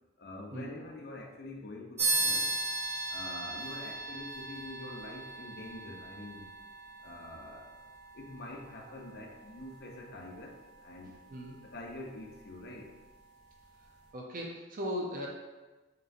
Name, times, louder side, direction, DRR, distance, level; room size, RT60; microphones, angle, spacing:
voice 1, 0.2-2.6 3.1-6.5 7.0-7.7 8.1-11.2 11.6-12.9, left 2 dB, 55° left, 0 dB, 0.6 m, -45 dB
sound 1, 2.0-11.9, right 2 dB, 15° right, 1.4 m, -37 dB
voice 2, 11.3-11.6 14.1-15.3, equal, 45° right, -1 dB, 0.5 m, -37 dB
5.1 x 3.0 x 2.5 m, 1.2 s
head